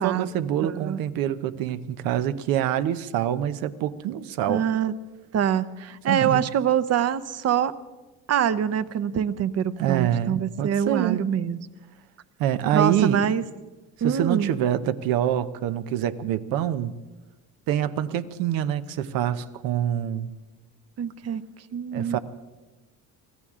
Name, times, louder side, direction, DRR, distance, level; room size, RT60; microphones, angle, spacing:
voice 1, 0.0-4.6 6.1-6.4 9.8-11.3 12.4-13.4 14.0-17.0 17.7-20.3 21.9-22.2, right 10 dB, 90° right, 12 dB, 0.8 m, -26 dB
voice 2, 0.6-1.0 4.5-4.9 5.3-7.7 8.3-11.6 12.7-13.4 14.0-14.5 21.0-21.4 21.7-22.2, right 9 dB, 50° right, 14 dB, 0.8 m, -24 dB
25.0 x 16.0 x 3.7 m, 1.2 s
cardioid pair, 110°, 34 cm